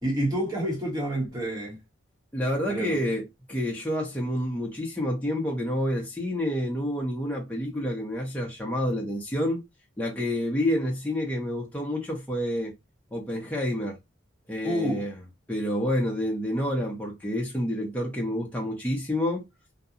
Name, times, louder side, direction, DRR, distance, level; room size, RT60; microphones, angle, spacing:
voice 1, 0.0-1.8 2.7-3.0 14.6-15.1, equal, 20° right, 1.0 m, -28 dB
voice 2, 2.3-9.6 10.0-12.7 13.1-14.0 14.5-15.1 15.5-19.4, equal, 5° left, 0.6 m, -28 dB
2.7 x 2.2 x 2.5 m
head